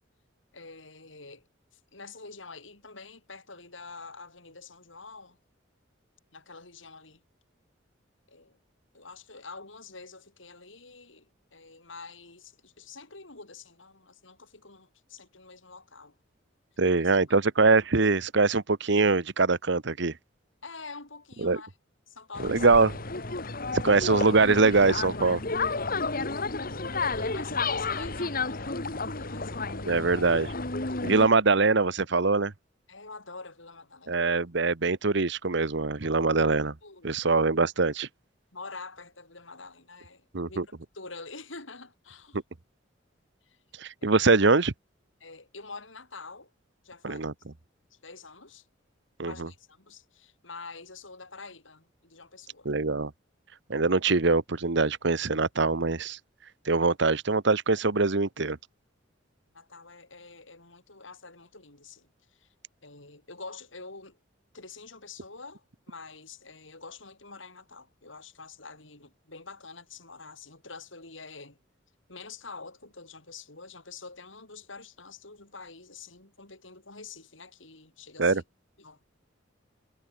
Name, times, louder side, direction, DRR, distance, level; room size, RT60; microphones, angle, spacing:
voice 1, 0.5-1.5 1.7-5.4 6.3-7.2 8.3-8.6 8.9-16.2 16.9-17.0 20.6-21.7 22.1-22.7 23.8-24.0 27.0-30.0 30.9-31.1 32.9-34.3 36.0-36.1 36.8-37.2 38.5-42.4 43.4-43.6 44.0-44.2 45.2-46.5 46.8-47.3 47.9-48.7 49.2-52.7 59.5-62.5 62.8-64.2 64.5-71.6 72.1-78.4 78.8-79.0, left 4 dB, 80° left, 7.3 m, -46 dB
voice 2, 16.8-20.1 21.4-21.6 22.4-22.9 23.7-25.4 29.9-30.5 31.0-32.5 34.1-36.7 37.0-38.1 40.3-40.6 43.8-44.7 47.0-47.3 49.2-49.5 52.6-53.1 53.7-56.2 56.6-58.6 78.2-78.4, right 3 dB, 65° right, 1.1 m, -23 dB
sound 1, 22.3-31.3, left 3 dB, 50° left, 2.6 m, -31 dB
head